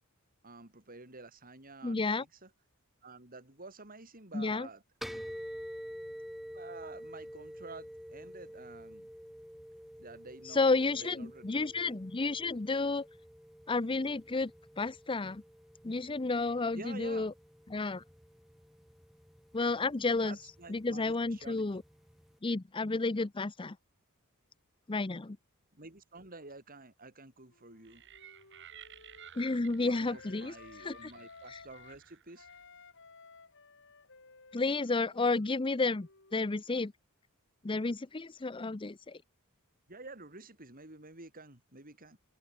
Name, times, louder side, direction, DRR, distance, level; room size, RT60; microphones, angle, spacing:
voice 1, 0.4-2.5 3.0-4.8 6.5-9.1 10.0-10.7 11.0-12.0 16.7-17.3 20.2-21.6 25.7-28.0 29.8-32.5 39.9-42.2, right 3 dB, 40° right, 5.3 m, -50 dB
voice 2, 1.8-2.2 4.3-4.7 10.5-13.1 13.7-14.5 14.8-15.4 15.8-17.3 17.7-18.0 19.5-20.4 20.7-21.8 22.4-23.8 24.9-25.4 29.4-31.1 31.5-31.6 34.5-36.9 37.6-39.2, left 3 dB, 25° left, 0.6 m, -31 dB
sound 1, 5.0-22.4, equal, ahead, 3.9 m, -49 dB
Wind instrument woodwind instrument, 27.5-32.0 32.3-36.8, left 4 dB, 60° left, 6.5 m, -56 dB
sound 2, 27.8-32.7, right 10 dB, 55° right, 2.4 m, -55 dB
open air
head